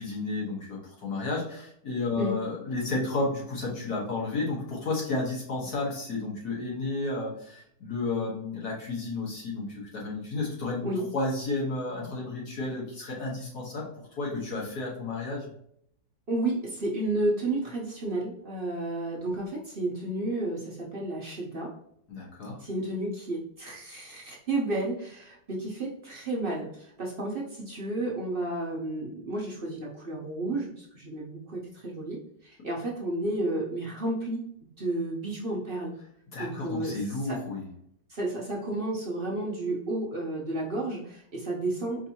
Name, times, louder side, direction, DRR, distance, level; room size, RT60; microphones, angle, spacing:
voice 1, 0.0-13.8 14.2-15.5 22.1-22.6 36.3-37.6, left 3 dB, 65° left, -4 dB, 1.6 m, -32 dB
voice 2, 16.3-21.7 22.6-34.4 34.8-35.9 36.4-37.4 38.1-42.1, right 2 dB, 45° right, -3 dB, 0.7 m, -32 dB
5.1 x 2.6 x 2.8 m, 0.69 s
omnidirectional pair, 1.8 m